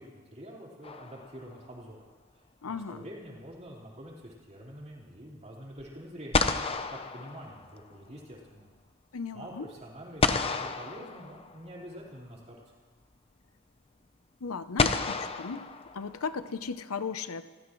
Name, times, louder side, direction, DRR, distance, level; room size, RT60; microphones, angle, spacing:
voice 1, 0.0-6.5 6.9-8.7 9.3-12.6, equal, 35° right, -4 dB, 4.4 m, -46 dB
sound 1, 0.8-1.7 5.8-5.9 6.3-8.1 10.2-11.8 13.1-13.2 14.8-16.4, left 4 dB, 30° left, 0.7 m, -31 dB
voice 2, 2.6-3.0 9.1-9.7 14.4-15.7 15.9-17.4, left 5 dB, 90° left, 11 dB, 0.7 m, -36 dB
28.0 x 15.5 x 3.2 m, 1.4 s
head